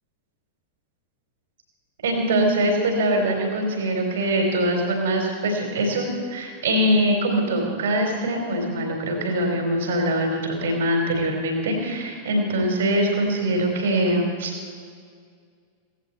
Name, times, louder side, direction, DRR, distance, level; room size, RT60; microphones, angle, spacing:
voice 1, 2.0-14.5, right 1 dB, 60° right, 2 dB, 3.8 m, -23 dB
17.5 x 16.0 x 4.3 m, 2.1 s
figure-of-eight pair, 90°, 0 cm